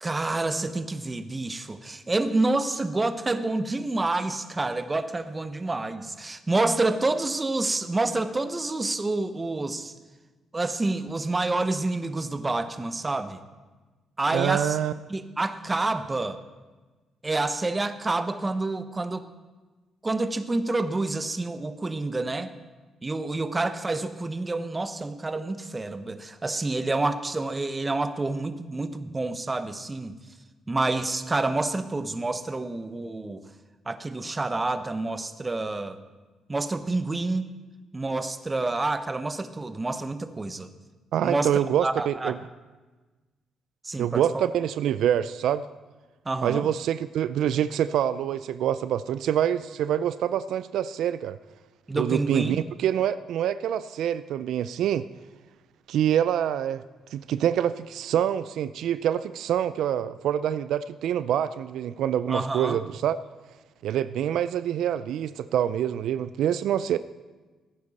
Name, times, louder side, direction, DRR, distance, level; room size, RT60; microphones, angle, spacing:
voice 1, 0.0-9.9 10.5-13.4 14.2-14.8 15.1-16.4 17.2-19.2 20.0-22.5 23.0-30.2 30.7-33.4 33.9-36.0 36.5-37.5 37.9-40.7 41.2-41.5 41.8-42.4 43.8-44.5 46.3-46.7 51.9-52.6 62.3-62.8, right 2 dB, 20° right, 11 dB, 0.8 m, -28 dB
voice 2, 14.3-14.9 41.1-42.4 44.0-45.6 46.4-51.4 51.9-55.1 55.9-56.8 57.1-63.2 63.8-67.0, right 10 dB, 80° right, 14 dB, 0.3 m, -26 dB
17.0 x 9.6 x 4.1 m, 1.3 s
cardioid pair, 90°, 0 cm